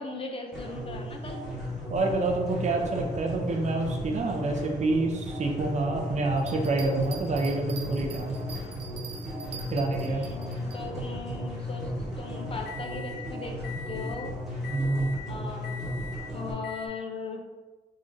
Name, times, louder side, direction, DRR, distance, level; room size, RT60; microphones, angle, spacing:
voice 1, 0.0-1.5 10.0-14.4 15.3-15.8 16.3-17.5, left 3 dB, 35° left, 2 dB, 0.4 m, -38 dB
sound 1, 0.5-16.5, equal, ahead, 1.1 m, -35 dB
voice 2, 1.9-8.4 9.7-10.2 14.7-15.2, right 2 dB, 45° right, 1 dB, 0.5 m, -27 dB
sound 2, 2.5-13.2 13.6-14.2 14.6-15.2 15.6-16.2 16.6-16.9, left 5 dB, 85° left, 0.6 m, -44 dB
sound 3, 6.4-10.8, right 6 dB, 90° right, 0.6 m, -44 dB
3.7 x 3.2 x 2.6 m, 1.3 s
wide cardioid pair, 140°, 17 cm